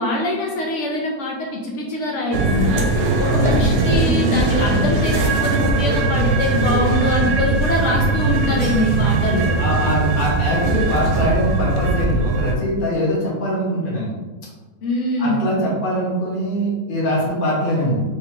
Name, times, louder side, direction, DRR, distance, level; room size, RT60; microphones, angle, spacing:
voice 1, 0.0-2.9 3.2-9.5 14.8-15.6, left 1 dB, 65° left, -1 dB, 0.8 m, -23 dB
sound 1, 2.3-12.5, right 3 dB, 75° right, 1.1 m, -19 dB
voice 2, 3.2-3.7 9.6-14.1 15.2-18.0, equal, 40° left, -5 dB, 1.0 m, -22 dB
3.6 x 3.3 x 3.0 m, 1.3 s
omnidirectional pair, 1.7 m